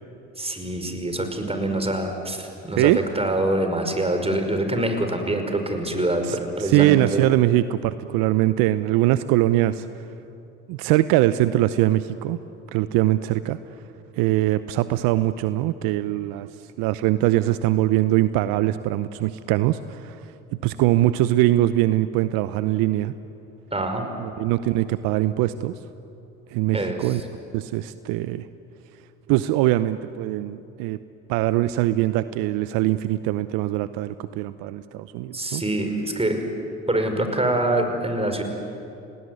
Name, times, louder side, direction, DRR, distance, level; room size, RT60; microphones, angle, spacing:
voice 1, 0.4-7.2 23.7-24.1 26.7-27.1 35.3-36.4 36.9-38.4, right 1 dB, 15° right, 5 dB, 5.4 m, -25 dB
voice 2, 6.2-9.9 10.7-12.4 12.7-13.7 14.2-16.5 16.8-20.3 20.6-23.1 24.2-25.7 26.5-27.2 27.5-28.5 29.3-31.0 31.3-35.6, right 15 dB, 70° right, 13 dB, 0.8 m, -22 dB
29.0 x 19.5 x 9.6 m, 2.8 s
hypercardioid pair, 60°, 36 cm